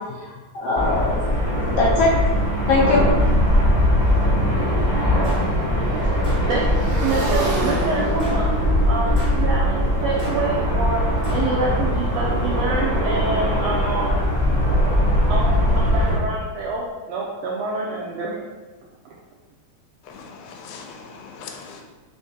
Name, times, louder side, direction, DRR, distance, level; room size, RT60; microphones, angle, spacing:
voice 1, 0.2-1.2 1.7-2.1 2.7-3.4, left 2 dB, 75° left, -6 dB, 1.4 m, -21 dB
sound 1, 0.8-16.2, equal, 50° left, 0.5 m, -20 dB
Motorcycle / Engine, 4.9-10.7, right 2 dB, 60° right, 1.5 m, -32 dB
sound 2, 5.2-5.5 6.2-6.5 7.2-7.4 8.2-8.5 9.2-9.4 10.2-10.4 11.2-11.5, left 1 dB, 40° right, 1.3 m, -34 dB
voice 2, 6.5-8.5 8.8-11.0 11.3-14.2 15.3-18.3, right 3 dB, 80° right, -5 dB, 1.6 m, -27 dB
voice 3, 20.1-21.8, left 5 dB, 90° left, 2 dB, 2.0 m, -40 dB
4.5 x 3.5 x 2.8 m, 1.2 s
omnidirectional pair, 3.3 m